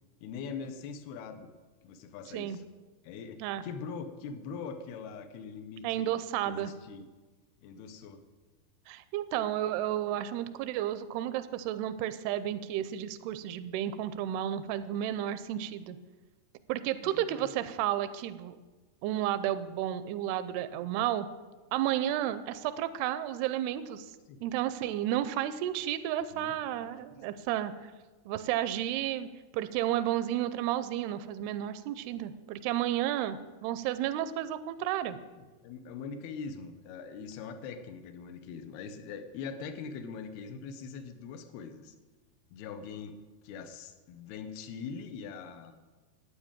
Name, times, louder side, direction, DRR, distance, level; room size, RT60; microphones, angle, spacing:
voice 1, 0.2-1.5 1.8-2.6 3.0-6.1 6.5-7.1 7.6-8.2 17.0-17.5 24.3-24.5 26.3-26.9 27.4-27.5 35.4-41.9 42.5-43.2 43.4-45.7, left 5 dB, 75° left, 8 dB, 2.9 m, -42 dB
voice 2, 5.8-6.7 8.9-16.0 16.7-18.6 19.0-21.3 21.7-24.1 24.4-27.7 28.3-29.3 29.5-35.2, right 12 dB, 80° right, 12 dB, 2.5 m, -32 dB
12.0 x 9.3 x 8.9 m, 1.3 s
omnidirectional pair, 4.7 m